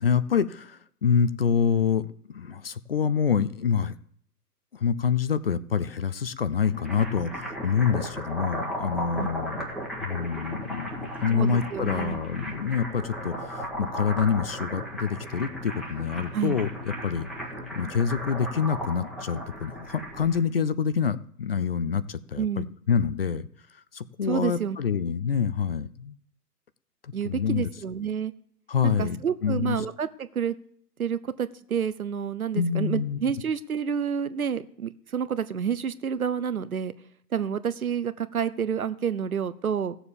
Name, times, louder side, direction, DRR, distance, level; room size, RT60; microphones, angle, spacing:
voice 1, 0.0-3.9 4.7-9.6 10.0-16.7 17.0-17.3 17.8-23.5 23.9-26.1 27.0-27.7 28.7-29.2 29.4-29.8 32.5-33.2, left 7 dB, 35° left, 15 dB, 0.6 m, -26 dB
sound 1, 6.5-20.4, equal, ahead, 1.4 m, -36 dB
voice 2, 11.3-12.2 16.3-16.6 22.4-22.7 24.3-24.8 27.1-28.3 28.8-30.5 31.0-36.9 37.3-40.0, right 7 dB, 60° right, 14 dB, 1.2 m, -29 dB
16.5 x 7.1 x 7.1 m, 0.65 s
figure-of-eight pair, 135°, 49 cm